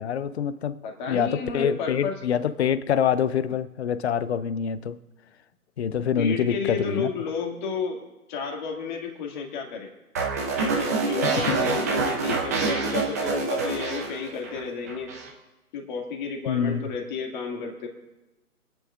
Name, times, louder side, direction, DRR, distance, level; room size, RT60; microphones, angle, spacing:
voice 1, 0.0-0.8 1.1-5.0 5.8-7.1 11.2-11.8 16.5-16.9, left 8 dB, 45° left, 14 dB, 0.6 m, -26 dB
voice 2, 0.8-2.1 6.2-8.0 8.3-9.9 10.6-15.1 15.7-17.9, left 5 dB, 30° left, 1 dB, 2.2 m, -32 dB
sound 1, 10.1-14.6 14.9-15.3, right 4 dB, 10° right, 0.6 m, -26 dB
29.0 x 10.0 x 2.5 m, 1.1 s
hypercardioid pair, 145°, 46 cm